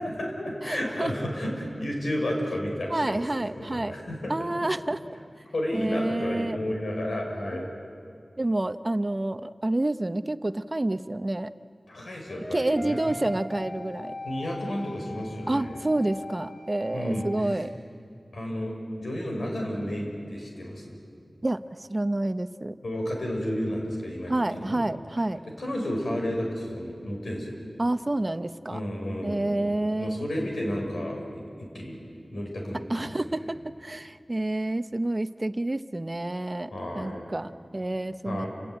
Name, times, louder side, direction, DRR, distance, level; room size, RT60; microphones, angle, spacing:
voice 1, 0.0-4.3 4.9-5.0 5.5-7.7 11.9-13.2 14.2-15.7 16.9-17.6 18.3-21.0 22.8-24.8 25.6-27.6 28.7-29.6 30.0-32.0 32.3-33.1 36.7-37.2 38.2-38.5, equal, 90° left, 0 dB, 5.6 m, -32 dB
voice 2, 0.6-1.1 2.9-3.9 4.3-5.0 5.7-6.6 7.5-7.7 8.4-11.5 12.5-14.1 15.5-17.7 21.4-22.7 24.3-25.4 27.8-28.8 29.2-30.3 32.9-33.6 33.8-36.7 36.9-38.5, right 1 dB, 30° right, 11 dB, 0.7 m, -28 dB
sound 1, 12.3-17.4, left 2 dB, 30° left, 1.3 m, -41 dB
29.0 x 16.0 x 9.2 m, 2.4 s
wide cardioid pair, 70°, 0 cm